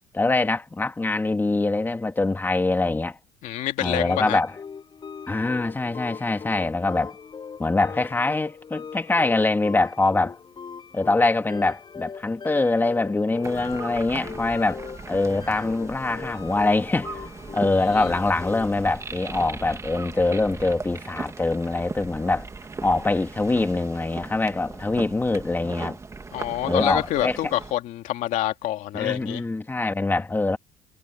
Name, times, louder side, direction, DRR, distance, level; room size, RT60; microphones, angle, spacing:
voice 1, 0.1-3.2 3.8-4.5 5.3-7.2 7.6-10.4 10.9-17.2 17.5-22.5 22.8-26.0 26.6-27.4 28.9-30.6, left 2 dB, 15° left, 2.1 m, -24 dB
voice 2, 3.4-4.4 17.8-18.1 26.3-29.4, left 14 dB, 70° left, 2.4 m, -27 dB
sound 1, 4.1-18.9, left 6 dB, 35° left, 6.7 m, -40 dB
sound 2, 13.4-27.7, right 4 dB, 20° right, 1.8 m, -38 dB
cardioid pair, 105°, 13 cm